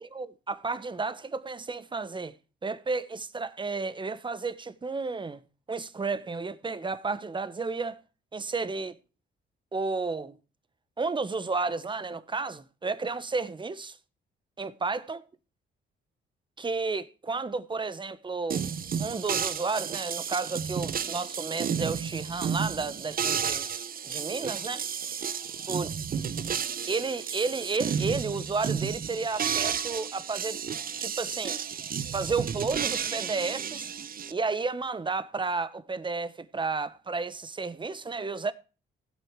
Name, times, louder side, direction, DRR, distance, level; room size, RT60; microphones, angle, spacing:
voice 1, 0.0-2.3 2.6-5.4 5.7-8.0 8.3-9.0 9.7-10.4 11.0-14.0 14.6-15.2 16.6-18.6 19.0-23.7 24.0-24.9 25.7-25.9 26.9-30.6 31.0-31.6 32.1-33.9 34.3-38.5, right 4 dB, 25° right, 1.1 m, -32 dB
sound 1, 18.5-34.3, right 7 dB, 45° right, 1.0 m, -32 dB
16.0 x 7.9 x 4.7 m
cardioid pair, 90°, 20 cm